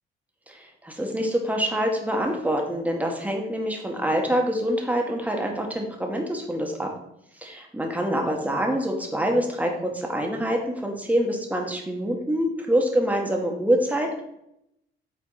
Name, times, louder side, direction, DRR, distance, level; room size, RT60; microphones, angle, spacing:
voice 1, 0.5-6.9 7.4-14.2, equal, 5° right, 1 dB, 1.5 m, -25 dB
7.4 x 4.1 x 4.1 m, 0.79 s
cardioid pair, 90°, 20 cm